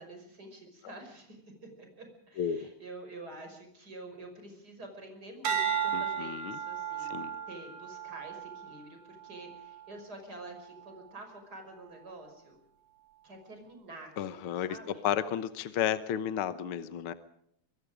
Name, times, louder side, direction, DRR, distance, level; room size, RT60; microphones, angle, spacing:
voice 1, 0.0-1.4 1.8-7.2 7.5-12.6 13.2-15.1, right 2 dB, 30° right, 5 dB, 6.0 m, -48 dB
sound 1, 5.4-9.9 10.5-10.9, right 8 dB, 80° right, 4.1 m, -35 dB
voice 2, 5.9-6.6 7.0-7.4 14.2-14.8 15.0-17.1, left 9 dB, 60° left, 12 dB, 1.5 m, -32 dB
24.5 x 23.5 x 5.1 m, 0.71 s
omnidirectional pair, 3.5 m